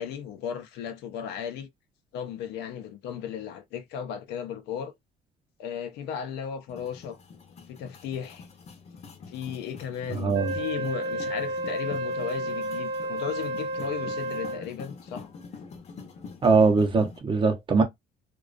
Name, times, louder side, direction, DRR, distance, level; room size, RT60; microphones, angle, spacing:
voice 1, 0.0-1.7 2.1-4.9 5.6-7.2 7.7-8.5 9.3-15.3, left 8 dB, 90° left, 0.5 m, -35 dB
sound 1, 6.7-17.2, left 5 dB, 40° left, 0.6 m, -46 dB
voice 2, 10.1-10.6 16.4-17.8, right 4 dB, 30° right, 0.6 m, -21 dB
Wind instrument woodwind instrument, 10.3-14.7, right 1 dB, 85° right, 0.6 m, -31 dB
2.3 x 2.2 x 2.3 m
cardioid pair, 110°, 17 cm